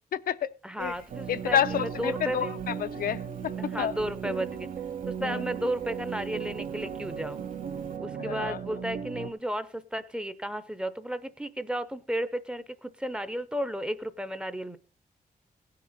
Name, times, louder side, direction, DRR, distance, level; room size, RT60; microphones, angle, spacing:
voice 1, 0.1-0.5 0.8-0.9 1.3-3.9 5.2-5.4 8.2-8.6, left 9 dB, 85° left, 0.5 m, -29 dB
voice 2, 0.6-2.5 3.6-4.7 5.1-7.4 8.0-14.8, right 1 dB, 5° right, 0.5 m, -33 dB
Rain, 0.8-8.0, right 3 dB, 65° right, 2.3 m, -54 dB
sound 1, 1.1-9.3, right 7 dB, 80° right, 0.8 m, -36 dB
17.0 x 6.7 x 4.0 m
wide cardioid pair, 140°, 15 cm